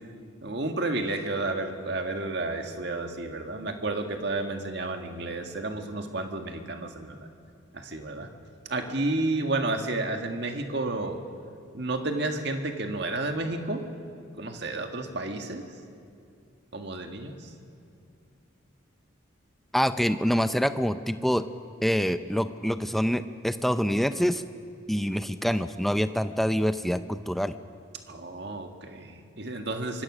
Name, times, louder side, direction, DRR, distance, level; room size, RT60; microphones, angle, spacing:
voice 1, 0.4-7.2 7.7-8.3 8.7-11.2 11.7-13.8 14.4-15.6 16.7-17.5 28.1-30.0, right 2 dB, 55° right, 5 dB, 1.8 m, -31 dB
voice 2, 19.7-21.5 21.8-24.4 24.9-27.5, equal, ahead, 10 dB, 0.5 m, -26 dB
25.5 x 21.5 x 6.2 m, 2.4 s
head